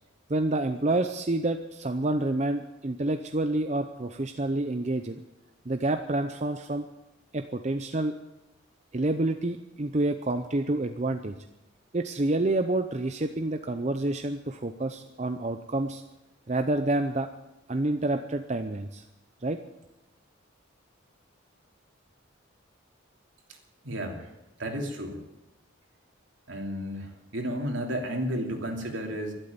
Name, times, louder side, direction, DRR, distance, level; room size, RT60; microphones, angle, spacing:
voice 1, 0.3-5.2 5.7-6.8 7.3-8.2 8.9-11.3 11.9-16.0 16.5-17.3 17.7-19.0 19.4-19.6, right 2 dB, 35° right, 7 dB, 0.7 m, -28 dB
voice 2, 23.8-24.3 24.6-25.2 26.5-29.3, equal, 70° right, 2 dB, 3.0 m, -32 dB
12.0 x 12.0 x 9.4 m, 0.95 s
head